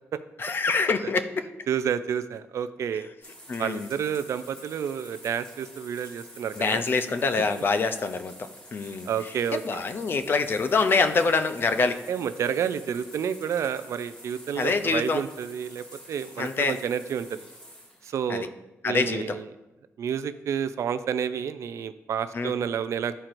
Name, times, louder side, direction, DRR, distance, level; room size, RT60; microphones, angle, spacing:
voice 1, 0.4-1.5 3.5-3.9 6.6-8.3 8.7-9.1 9.6-12.0 14.6-15.2 16.4-16.8 18.3-18.5 18.8-19.4 22.3-22.5, left 4 dB, 45° left, 9 dB, 0.5 m, -25 dB
voice 2, 1.7-3.1 3.6-6.8 9.1-9.8 12.1-17.3 18.0-18.5 18.8-19.5 20.0-23.1, right 8 dB, 70° right, 12 dB, 0.3 m, -30 dB
sound 1, 3.2-18.2, equal, 15° left, 2.0 m, -48 dB
11.0 x 4.4 x 2.5 m, 1.0 s
cardioid pair, 115°, 5 cm